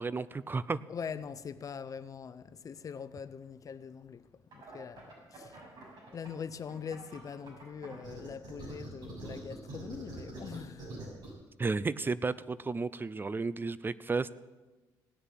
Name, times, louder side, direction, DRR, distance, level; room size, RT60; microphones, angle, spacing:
voice 1, 0.0-0.8 11.6-14.3, right 4 dB, 25° right, 0.5 m, -33 dB
voice 2, 0.9-5.9 6.1-11.0, left 6 dB, 45° left, 0.8 m, -43 dB
sound 1, 4.5-6.3 6.7-11.3, right 2 dB, 60° right, 6.5 m, -45 dB
17.5 x 6.6 x 9.2 m
cardioid pair, 80°, 8 cm